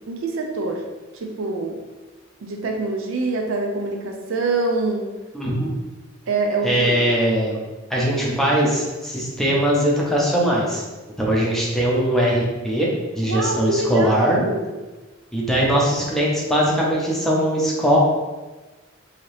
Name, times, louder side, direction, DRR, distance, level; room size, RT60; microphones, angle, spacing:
voice 1, 0.1-0.8 1.2-1.8 2.4-5.1 6.3-7.0 13.3-14.7, right 3 dB, 75° right, 2 dB, 0.5 m, -25 dB
voice 2, 5.3-5.7 6.6-7.6 7.9-10.8 11.2-12.9 13.2-14.4 15.3-18.0, equal, ahead, -5 dB, 0.6 m, -20 dB
2.8 x 2.8 x 3.2 m, 1.2 s
head